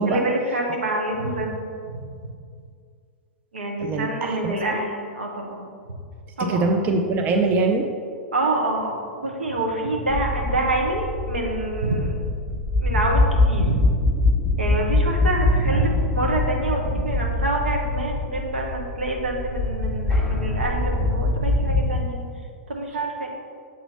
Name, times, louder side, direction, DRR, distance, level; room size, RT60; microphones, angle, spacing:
voice 1, 0.1-2.3 3.5-5.7 6.4-6.6 8.3-13.8 14.6-22.2 22.7-23.3, right 2 dB, 85° right, 0 dB, 1.0 m, -26 dB
voice 2, 3.8-4.8 6.5-7.9, right 3 dB, 30° right, 4 dB, 0.5 m, -23 dB
sound 1, 10.1-22.0, left 2 dB, 5° left, 0.9 m, -23 dB
7.2 x 3.0 x 5.5 m, 2.1 s
hypercardioid pair, 105°, 6 cm